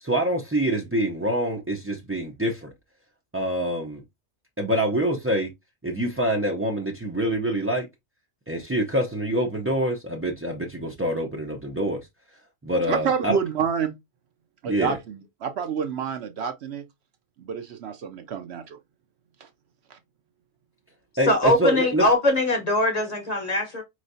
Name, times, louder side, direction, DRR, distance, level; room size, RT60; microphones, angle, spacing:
voice 1, 0.0-2.7 3.3-4.0 4.6-5.5 5.8-7.9 8.5-12.0 12.6-13.4 14.7-15.0 21.2-22.1, right 1 dB, 20° right, 0.4 m, -25 dB
voice 2, 12.9-13.9 14.6-16.8 17.4-18.8 19.4-19.5 19.9-20.0, right 7 dB, 65° right, 0.8 m, -28 dB
voice 3, 21.3-23.8, left 1 dB, 35° left, 0.9 m, -22 dB
4.4 x 3.1 x 2.6 m
omnidirectional pair, 1.3 m